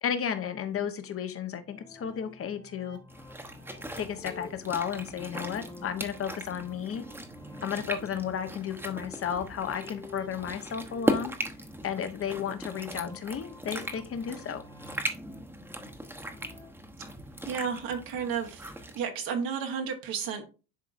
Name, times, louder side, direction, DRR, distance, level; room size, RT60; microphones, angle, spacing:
voice 1, 0.0-3.0 3.9-7.0 7.6-11.3 11.8-14.6, left 8 dB, 35° left, 9 dB, 1.0 m, -33 dB
sound 1, 1.6-16.7, left 2 dB, 10° left, 1.4 m, -51 dB
sound 2, 3.1-19.0, right 1 dB, 5° right, 1.0 m, -38 dB
voice 2, 17.5-20.5, right 6 dB, 65° right, 3 dB, 1.4 m, -32 dB
10.5 x 3.7 x 2.6 m, 0.33 s
supercardioid pair, 100°, 37 cm